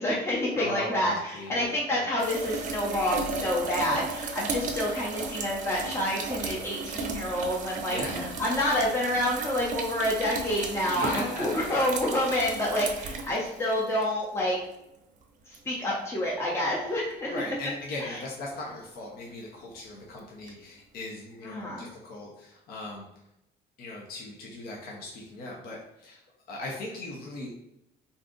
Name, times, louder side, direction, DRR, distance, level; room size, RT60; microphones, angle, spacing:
voice 1, 0.0-14.6 15.5-17.3 18.0-18.2 21.4-21.9, left 1 dB, 15° left, -4 dB, 0.7 m, -28 dB
voice 2, 0.5-2.1 7.9-8.4 10.9-11.8 17.3-23.1 23.8-26.2 26.5-27.5, left 2 dB, 65° left, -2 dB, 0.8 m, -38 dB
sound 1, 2.2-14.0 15.5-15.6 20.5-20.6, right 3 dB, 50° right, 0.5 m, -35 dB
2.6 x 2.4 x 3.7 m, 0.85 s
cardioid pair, 110°, 17 cm